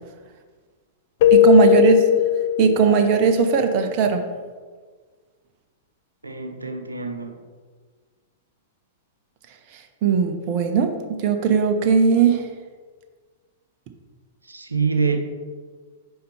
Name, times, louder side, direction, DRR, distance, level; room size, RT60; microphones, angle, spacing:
Keyboard (musical), 1.2-3.2, left 14 dB, 50° left, 0.3 m, -17 dB
voice 1, 1.3-2.0 2.6-4.2 10.0-12.5, right 6 dB, 45° right, 6 dB, 0.7 m, -18 dB
voice 2, 6.2-7.4 14.4-15.2, right 5 dB, 85° right, 5 dB, 0.7 m, -25 dB
5.4 x 5.1 x 4.4 m, 1.5 s
figure-of-eight pair, 100°, 0 cm